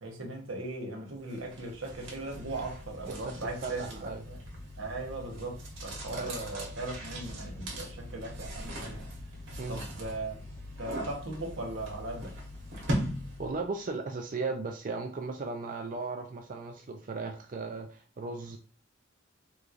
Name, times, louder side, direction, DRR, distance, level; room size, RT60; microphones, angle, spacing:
voice 1, 0.0-4.4 4.8-9.0 9.7-10.4 10.8-12.3, right 2 dB, 80° right, 1.1 m, -38 dB
sound 1, 1.3-13.7, equal, 65° right, 1.3 m, -40 dB
voice 2, 3.6-4.2 6.1-6.4 9.6-9.8 13.4-18.6, right 3 dB, 40° right, 0.4 m, -36 dB
3.5 x 3.1 x 2.5 m
head